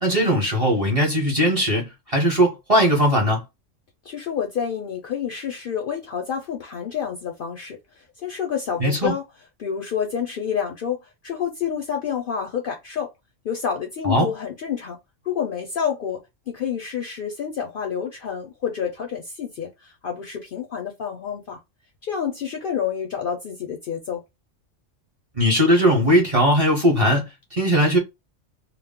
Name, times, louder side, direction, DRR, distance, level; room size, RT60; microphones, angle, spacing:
voice 1, 0.0-3.4 8.8-9.1 14.0-14.3 25.4-27.2 27.5-28.0, equal, 35° right, 0.7 m, -19 dB
voice 2, 4.1-7.8 8.2-9.2 9.6-13.1 13.4-15.0 15.2-16.2 16.5-21.6 22.0-24.2, left 7 dB, 60° left, 0.6 m, -28 dB
2.2 x 2.0 x 3.5 m
omnidirectional pair, 1.3 m